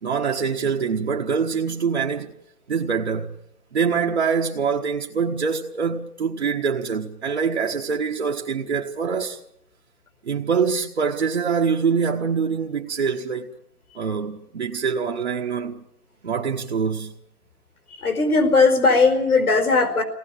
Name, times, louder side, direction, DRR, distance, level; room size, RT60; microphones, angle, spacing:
voice 1, 0.0-2.3 2.7-3.3 3.7-9.4 10.2-13.5 13.9-15.8 16.2-17.1, right 6 dB, 45° right, 1.5 m, -24 dB
voice 2, 18.0-20.0, left 3 dB, 75° left, 4.7 m, -18 dB
23.0 x 19.0 x 8.9 m
hypercardioid pair, 175°, 44 cm